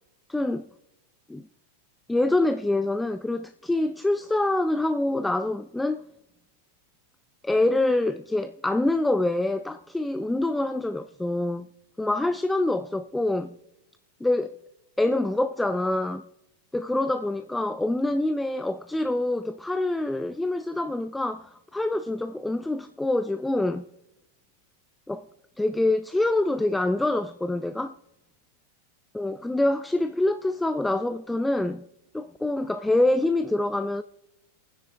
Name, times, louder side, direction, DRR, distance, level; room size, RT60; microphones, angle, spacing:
voice 1, 0.3-0.7 1.3-1.5 2.1-6.0 7.4-11.7 12.0-13.6 14.2-14.5 15.0-16.2 16.7-23.9 25.1-25.3 25.6-27.9 29.1-31.8 32.1-34.0, left 2 dB, 5° left, 0.4 m, -25 dB
27.0 x 9.8 x 3.4 m
figure-of-eight pair, 90°, 0 cm